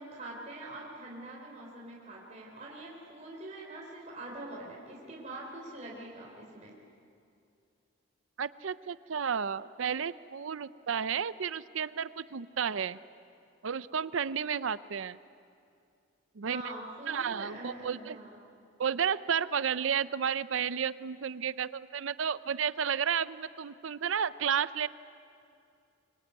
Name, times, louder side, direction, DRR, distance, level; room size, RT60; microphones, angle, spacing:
voice 1, 0.0-6.7 16.4-18.4, right 1 dB, 35° right, -3 dB, 3.6 m, -44 dB
voice 2, 8.4-13.0 13.6-15.2 16.4-16.6 17.1-18.2 18.8-24.9, right 7 dB, 80° right, 16 dB, 0.6 m, -32 dB
24.5 x 24.0 x 9.4 m, 2.5 s
head